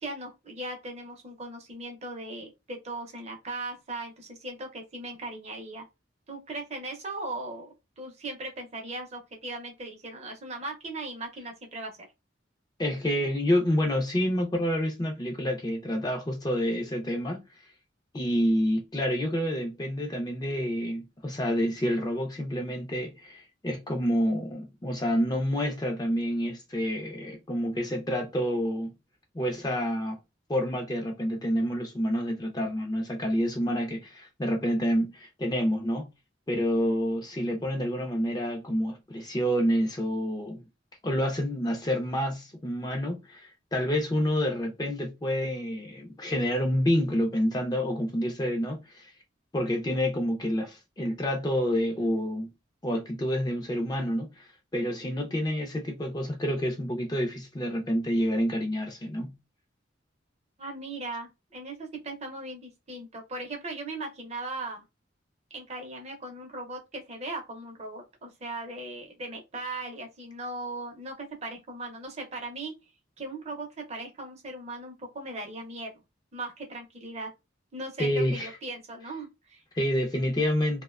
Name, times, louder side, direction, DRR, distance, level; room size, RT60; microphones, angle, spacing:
voice 1, 0.0-5.8 6.3-12.1 60.6-64.8 65.5-72.7 73.2-75.9 76.3-77.3 77.7-79.6, right 2 dB, 35° right, 0.6 m, -38 dB
voice 2, 12.8-17.4 18.1-28.9 29.3-30.2 30.5-36.1 36.5-40.6 41.0-49.1 49.5-52.5 52.8-59.3 78.0-78.5 79.7-80.8, equal, 20° left, 0.5 m, -28 dB
2.6 x 2.1 x 2.3 m
head